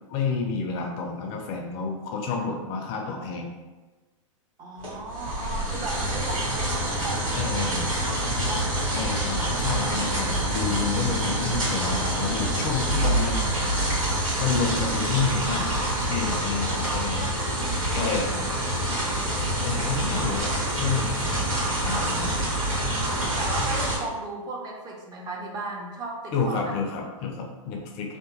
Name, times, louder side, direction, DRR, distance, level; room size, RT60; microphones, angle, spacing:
voice 1, 0.1-3.5 7.3-7.9 8.9-13.5 14.4-15.7 16.1-17.2 17.9-18.3 19.6-20.5 20.8-21.5 21.8-22.5 26.3-28.2, left 5 dB, 35° left, 2 dB, 0.4 m, -29 dB
voice 2, 4.6-8.2 8.5-8.7 16.7-18.6 23.4-26.9, right 2 dB, 25° right, -1 dB, 0.5 m, -36 dB
sound 1, 4.8-24.0, right 1 dB, 85° right, 1.5 m, -26 dB
2.8 x 2.0 x 2.8 m, 1.2 s
hypercardioid pair, 115°, 17 cm